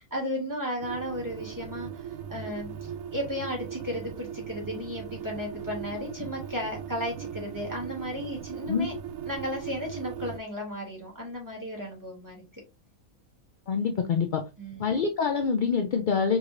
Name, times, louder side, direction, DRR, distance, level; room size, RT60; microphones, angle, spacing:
voice 1, 0.0-1.9 2.3-8.9 9.3-12.4 14.6-14.9, left 1 dB, 15° right, -2 dB, 2.4 m, -34 dB
sound 1, 0.8-10.4, right 8 dB, 85° right, 1.0 m, -39 dB
voice 2, 13.7-14.4 14.8-16.4, left 6 dB, 60° left, 5 dB, 0.5 m, -25 dB
4.8 x 3.8 x 2.5 m, 0.25 s
omnidirectional pair, 1.5 m